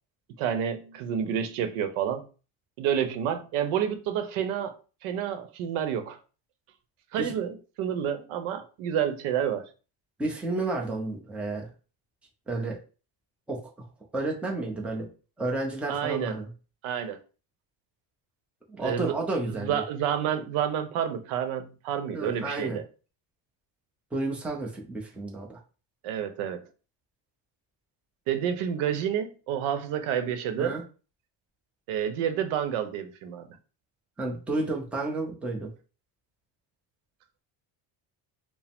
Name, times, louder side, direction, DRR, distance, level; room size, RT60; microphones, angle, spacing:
voice 1, 0.4-2.2 2.8-4.7 5.0-6.2 7.1-9.7 15.9-16.3 16.8-17.2 18.8-19.1 19.6-22.8 26.0-26.6 28.3-30.8 31.9-33.5, right 9 dB, 90° right, 0.8 m, -29 dB
voice 2, 10.2-11.7 12.5-12.8 13.5-13.6 14.1-15.1 15.4-16.5 18.7-19.8 22.1-22.8 24.1-25.6 30.6-30.8 34.2-35.7, right 2 dB, 5° right, 0.5 m, -31 dB
4.7 x 2.1 x 3.5 m
cardioid pair, 160°, 48 cm